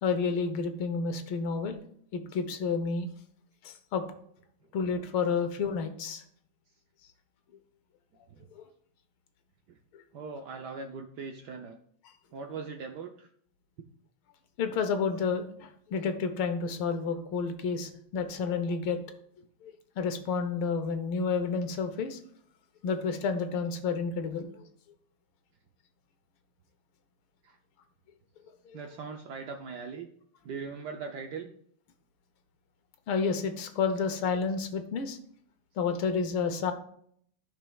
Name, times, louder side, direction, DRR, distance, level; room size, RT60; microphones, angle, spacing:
voice 1, 0.0-1.8 2.1-3.1 3.6-4.0 4.7-6.2 8.5-8.6 9.9-10.0 14.6-19.0 19.6-22.2 22.8-24.7 28.7-28.8 33.1-35.2 35.8-36.7, left 5 dB, 80° left, 8 dB, 1.7 m, -30 dB
voice 2, 10.1-11.8 12.3-13.3 27.4-27.6 28.7-30.1 30.4-31.5, right 5 dB, 70° right, 4 dB, 1.0 m, -40 dB
13.5 x 5.5 x 2.3 m, 0.64 s
omnidirectional pair, 2.3 m